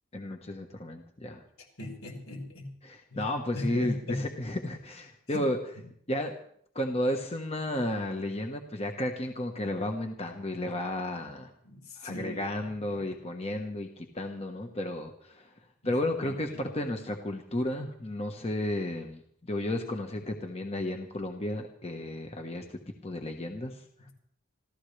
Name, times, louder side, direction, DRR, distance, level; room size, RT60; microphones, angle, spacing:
voice 1, 0.1-1.4 2.8-5.6 6.1-6.3 6.7-11.5 12.0-15.5 15.8-24.1, left 1 dB, 30° left, 4 dB, 1.2 m, -33 dB
voice 2, 1.8-2.7 3.1-4.2 5.3-5.4 5.8-5.9 11.6-12.4 12.9-13.0 15.8-16.7, left 2 dB, 80° left, 1 dB, 4.5 m, -39 dB
26.5 x 14.5 x 3.3 m, 0.63 s
head